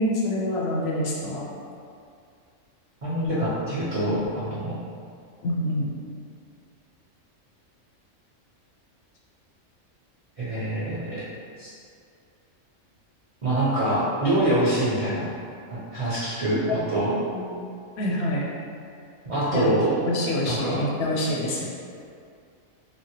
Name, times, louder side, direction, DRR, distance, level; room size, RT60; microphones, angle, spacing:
voice 1, 0.0-1.5 5.4-5.9 16.7-17.6 18.0-18.4 19.5-19.7 20.1-21.7, left 1 dB, 65° left, -4 dB, 0.7 m, -27 dB
voice 2, 3.0-4.8 10.4-11.2 11.6-11.7 13.4-15.4 15.7-17.2 19.3-19.9 20.4-20.8, right 1 dB, 40° right, -12 dB, 0.5 m, -25 dB
3.4 x 2.1 x 2.8 m, 2.3 s
omnidirectional pair, 1.4 m